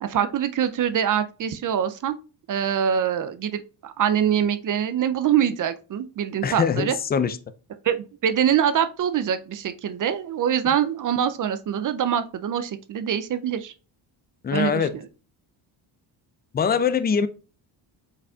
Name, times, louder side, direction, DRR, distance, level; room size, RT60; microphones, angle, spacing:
voice 1, 0.0-2.2 2.5-7.0 7.8-13.7 14.5-15.0, right 9 dB, 40° right, 11 dB, 0.5 m, -24 dB
voice 2, 6.4-7.4 14.4-14.9 16.5-17.3, left 6 dB, 20° left, 13 dB, 0.4 m, -22 dB
5.3 x 4.0 x 2.3 m, 0.36 s
supercardioid pair, 70°, 50 cm